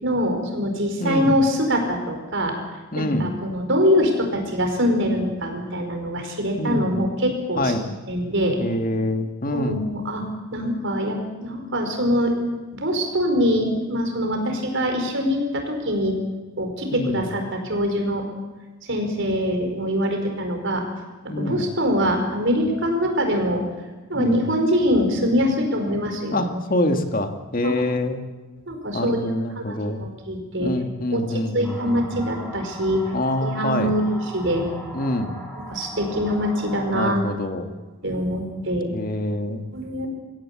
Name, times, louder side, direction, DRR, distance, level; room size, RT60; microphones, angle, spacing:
voice 1, 0.0-2.5 2.9-8.6 9.5-10.2 10.5-12.3 12.7-16.2 16.6-18.2 18.9-20.8 21.2-23.6 24.1-26.4 27.6-27.7 28.7-30.7 31.1-33.1 33.4-34.7 35.7-37.2 38.0-38.9 39.7-40.1, equal, 60° right, 4 dB, 5.0 m, -24 dB
voice 2, 1.0-1.3 2.9-3.3 6.6-6.9 7.6-7.9 8.6-9.8 16.9-17.2 21.3-21.6 24.1-24.5 26.3-28.2 28.9-30.0 30.6-32.3 33.1-33.9 34.9-35.4 36.9-37.7 38.9-39.6, left 1 dB, 40° left, 6 dB, 1.9 m, -25 dB
sound 1, 31.6-37.2, right 1 dB, ahead, 6.9 m, -39 dB
23.5 x 16.0 x 8.6 m, 1.2 s
head